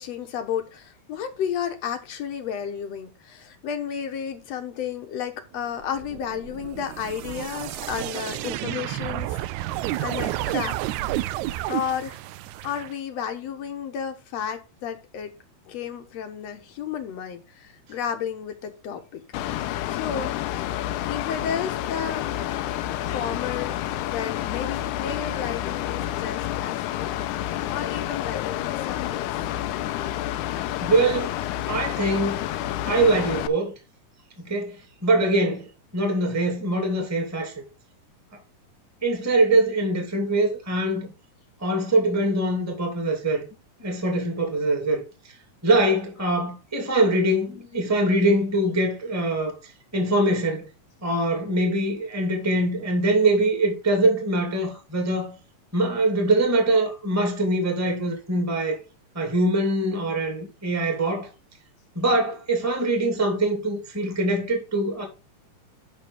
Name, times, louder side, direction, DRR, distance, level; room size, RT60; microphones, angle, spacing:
voice 1, 0.0-9.4 10.0-10.8 11.7-12.2 12.6-15.3 15.7-19.2 19.6-20.4 21.1-22.3 23.0-23.8 24.1-27.1 27.7-29.3, left 8 dB, 60° left, 2.0 m, -32 dB
sound 1, 5.8-12.9, right 15 dB, 80° right, 1.7 m, -31 dB
Mechanical fan, 19.3-33.5, left 13 dB, 75° left, 2.0 m, -29 dB
voice 2, 30.8-31.4 31.7-32.5 32.8-33.7 34.4-37.6 39.0-41.1 41.6-43.4 43.8-45.0 45.6-49.6 49.9-50.7 51.0-55.4 55.7-58.8 59.1-61.3 62.0-65.1, right 2 dB, 5° right, 1.9 m, -23 dB
11.5 x 4.0 x 5.4 m
omnidirectional pair, 3.8 m